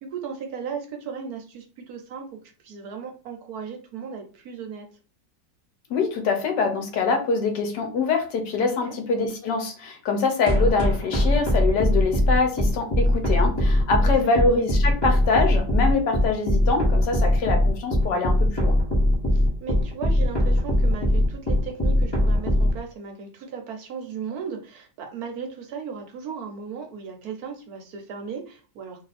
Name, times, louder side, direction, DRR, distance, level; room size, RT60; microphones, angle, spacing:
voice 1, 0.0-2.4 2.6-4.9 8.7-8.9 14.0-14.4 19.3-29.1, right 6 dB, 65° right, 3 dB, 1.1 m, -36 dB
voice 2, 5.9-18.8, left 4 dB, 75° left, 5 dB, 1.4 m, -24 dB
sound 1, 10.5-22.7, left 1 dB, 20° left, 0.8 m, -20 dB
3.0 x 2.7 x 4.1 m, 0.37 s
omnidirectional pair, 1.8 m